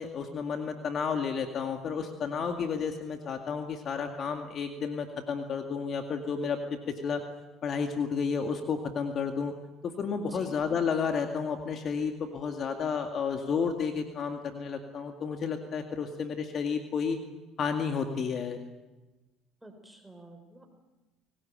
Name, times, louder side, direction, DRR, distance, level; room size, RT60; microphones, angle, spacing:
voice 1, 0.0-6.6 7.0-7.2 7.6-9.5 9.8-17.2 17.6-18.6, left 6 dB, 50° left, 5 dB, 2.2 m, -31 dB
voice 2, 19.6-20.7, right 2 dB, 10° right, 5 dB, 4.0 m, -49 dB
24.5 x 18.5 x 8.9 m, 1.1 s
hypercardioid pair, 75°, 0 cm